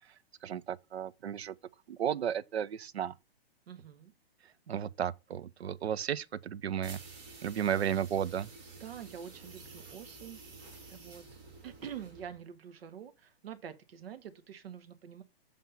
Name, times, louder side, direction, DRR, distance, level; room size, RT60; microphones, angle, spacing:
voice 1, 0.4-1.5 1.9-3.1 4.7-7.0 7.4-8.5, right 9 dB, 85° right, 0.6 m, -33 dB
voice 2, 3.7-4.1 8.8-10.4 10.9-11.3 11.6-15.2, right 9 dB, 70° right, 1.1 m, -46 dB
sound 1, 6.8-12.4, right 3 dB, 35° right, 2.7 m, -51 dB
7.8 x 3.5 x 5.4 m
hypercardioid pair, 130°, 31 cm